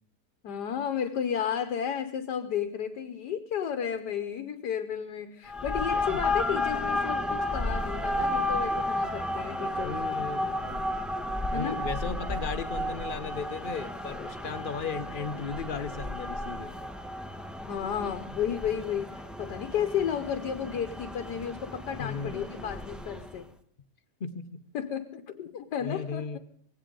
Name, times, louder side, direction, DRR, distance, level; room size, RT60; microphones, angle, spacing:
voice 1, 0.4-10.0 11.5-11.8 17.7-23.5 24.7-26.4, left 8 dB, 85° left, 7 dB, 1.5 m, -33 dB
sound 1, 5.5-23.4, left 1 dB, ahead, 0.6 m, -33 dB
voice 2, 9.8-10.8 11.5-16.7 22.0-22.4 24.2-24.6 25.8-26.4, left 6 dB, 45° left, 11 dB, 0.8 m, -36 dB
19.0 x 16.5 x 3.8 m, 0.64 s
omnidirectional pair, 1.8 m